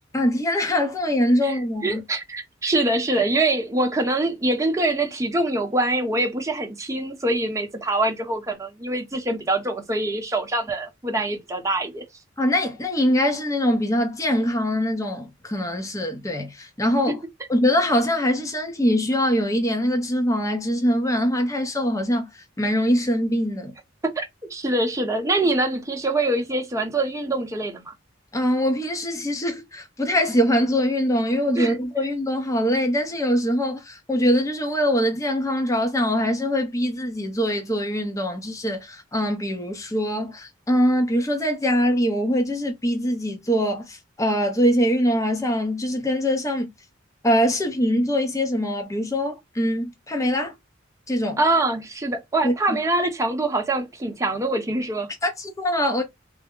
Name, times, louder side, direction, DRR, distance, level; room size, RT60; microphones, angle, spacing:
voice 1, 0.1-2.0 12.4-17.2 17.5-23.7 28.3-46.7 47.2-50.5 51.1-51.4 52.4-52.8 55.2-56.0, equal, 15° left, 0.7 m, -23 dB
voice 2, 1.4-12.0 17.1-17.2 24.0-24.2 24.5-27.9 31.6-31.8 51.4-55.1, right 2 dB, 15° right, 0.8 m, -24 dB
3.4 x 2.1 x 3.6 m
head